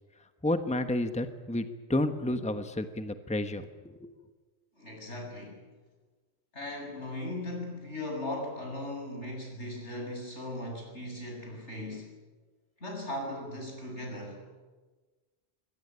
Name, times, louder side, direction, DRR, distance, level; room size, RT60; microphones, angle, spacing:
voice 1, 0.4-3.7 4.0-4.1, left 1 dB, 5° left, 8 dB, 1.2 m, -30 dB
voice 2, 4.8-5.6 6.5-12.1 12.8-14.5, left 1 dB, 85° left, 1 dB, 8.2 m, -38 dB
24.0 x 21.5 x 9.8 m, 1.3 s
omnidirectional pair, 1.2 m